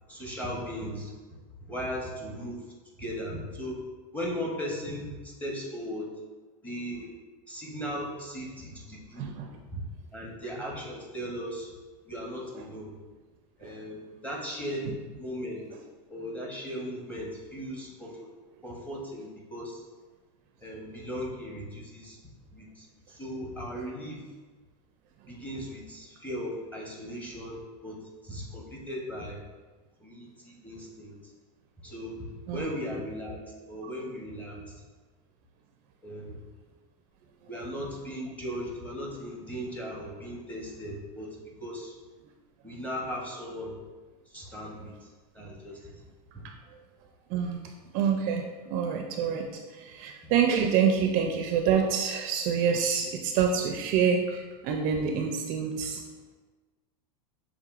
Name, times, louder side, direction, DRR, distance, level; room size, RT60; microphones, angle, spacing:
voice 1, 0.1-1.1 1.7-2.6 3.0-3.8 4.1-6.1 6.6-7.1 7.5-9.3 9.7-9.8 10.1-11.7 12.1-12.9 13.6-14.9 15.2-15.6 16.1-18.3 18.6-19.8 20.6-22.2 22.5-24.2 25.3-28.0 28.2-29.4 30.0-31.1 31.8-33.4 33.7-34.8 36.0-36.3 37.5-42.0 42.6-43.8 44.3-45.1 45.3-45.9 46.3-46.4 50.2-50.3, equal, 5° left, -3 dB, 0.8 m, -37 dB
voice 2, 9.2-9.5 12.6-12.7 13.6-13.7 14.8-15.0 32.5-32.7 33.8-33.9 47.3-47.6 47.9-48.5 48.7-56.0, right 7 dB, 45° right, 4 dB, 0.4 m, -27 dB
6.5 x 3.1 x 2.4 m, 1.3 s
supercardioid pair, 140°, 20 cm